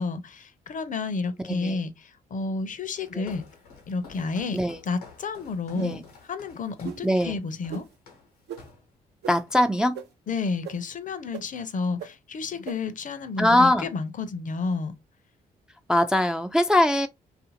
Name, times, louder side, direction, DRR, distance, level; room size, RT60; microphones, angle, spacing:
voice 1, 0.0-3.4 3.9-4.6 4.9-6.0 6.3-7.8 10.3-14.9, left 4 dB, 45° left, 0.6 m, -31 dB
voice 2, 1.5-1.8 3.1-3.3 4.5-4.8 5.8-6.0 7.0-7.4 9.3-10.0 13.4-13.9 15.9-17.1, left 1 dB, 5° right, 0.3 m, -22 dB
Walk footsteps, 2.9-8.9 9.4-9.6 9.9-10.7, left 5 dB, 90° left, 0.8 m, -51 dB
sound 1, 5.7-6.1 6.8-7.0 7.7-7.8 8.5-8.6 9.2-9.3 9.9-10.0 10.6-10.7 11.3-11.4 12.0-12.1 12.7-12.8, right 9 dB, 60° right, 0.5 m, -36 dB
2.7 x 2.5 x 2.6 m
hypercardioid pair, 40°, 19 cm